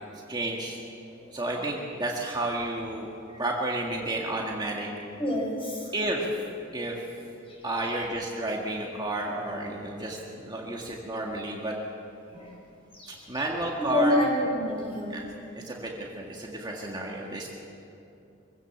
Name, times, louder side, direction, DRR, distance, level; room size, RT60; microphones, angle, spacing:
voice 1, 0.3-0.8 1.3-3.1 3.4-4.9 5.9-6.3 6.7-7.0 7.6-11.8 13.3-14.2 15.1-15.2 15.5-17.5, right 1 dB, 20° right, -2 dB, 1.9 m, -31 dB
voice 2, 5.2-5.9 7.5-8.1 12.3-12.5 12.9-13.4 13.8-15.2, left 1 dB, 30° left, -2 dB, 6.3 m, -29 dB
24.0 x 17.0 x 7.3 m, 2.7 s
head